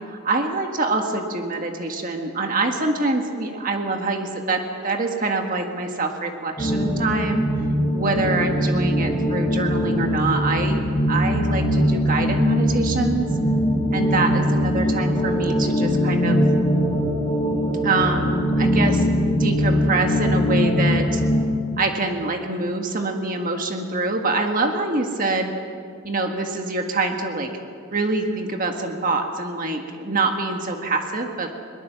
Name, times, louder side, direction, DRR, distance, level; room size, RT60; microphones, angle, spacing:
voice 1, 0.1-7.4 7.9-10.8 11.1-13.3 13.9-16.4 17.8-19.1 19.4-21.2 21.8-25.5 26.0-27.5 27.9-31.5, right 3 dB, 40° right, 3 dB, 1.7 m, -25 dB
sound 1, 6.6-21.4, equal, 15° left, 4.1 m, -21 dB
22.5 x 20.0 x 7.0 m, 2.2 s
head